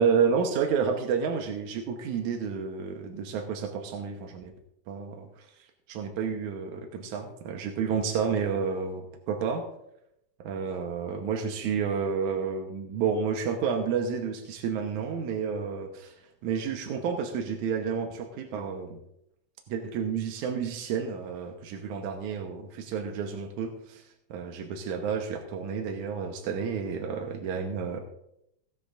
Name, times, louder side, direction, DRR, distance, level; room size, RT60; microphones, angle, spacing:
voice 1, 0.0-4.5 4.9-5.5 5.9-9.6 10.4-16.2 16.4-19.0 19.7-24.0 24.3-28.0, right 6 dB, 85° right, 4 dB, 2.4 m, -30 dB
17.0 x 12.0 x 2.5 m, 0.79 s
omnidirectional pair, 3.3 m